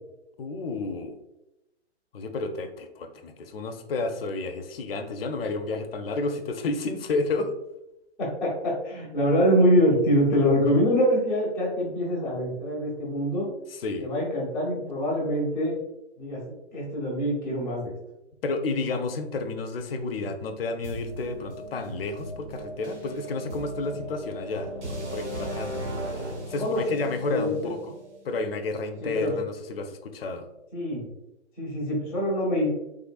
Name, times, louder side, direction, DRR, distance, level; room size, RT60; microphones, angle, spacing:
voice 1, 0.4-1.2 2.1-7.6 13.7-14.1 18.4-25.7 26.1-28.0 28.2-30.5, left 3 dB, 55° left, 7 dB, 0.6 m, -31 dB
voice 2, 8.2-13.5 14.0-15.8 16.2-17.9 26.6-26.8 27.2-27.7 29.0-29.3 30.7-31.1 31.6-32.7, equal, ahead, -14 dB, 0.6 m, -24 dB
sound 1, 20.8-28.7, right 1 dB, 75° right, 1.2 m, -37 dB
3.7 x 3.2 x 2.3 m, 0.90 s
hypercardioid pair, 145°, 35 cm